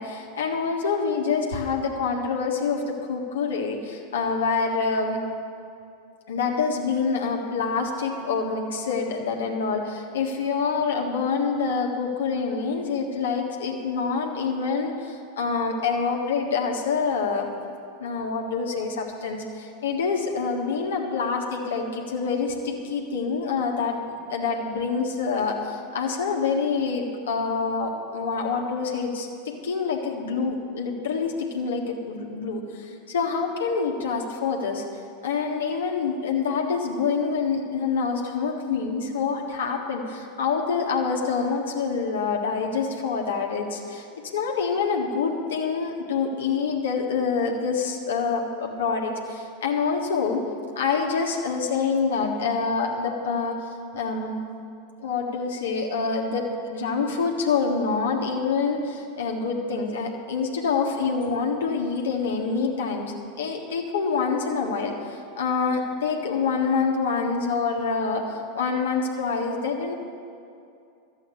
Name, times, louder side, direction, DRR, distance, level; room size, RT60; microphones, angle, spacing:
voice 1, 0.0-5.2 6.3-17.5 18.0-34.8 35.2-44.1 44.3-50.4 50.8-54.4 55.0-69.9, left 5 dB, 70° left, 1 dB, 1.6 m, -26 dB
12.5 x 8.1 x 8.3 m, 2.5 s
figure-of-eight pair, 90°, 0 cm